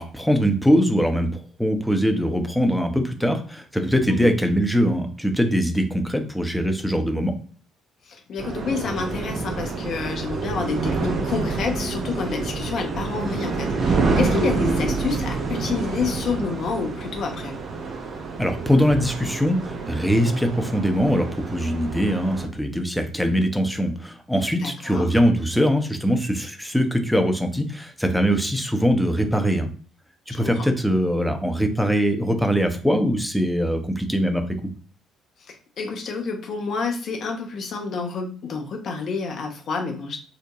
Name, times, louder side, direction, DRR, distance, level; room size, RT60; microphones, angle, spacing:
voice 1, 0.0-7.4 18.4-29.7 30.3-34.4, equal, ahead, 5 dB, 0.5 m, -22 dB
voice 2, 8.1-17.5 24.6-25.1 30.4-30.6 35.5-40.2, left 4 dB, 50° left, 4 dB, 0.6 m, -28 dB
sound 1, 8.4-22.5, right 4 dB, 45° right, 0.5 m, -27 dB
2.7 x 2.1 x 2.9 m, 0.43 s
figure-of-eight pair, 50°, 0 cm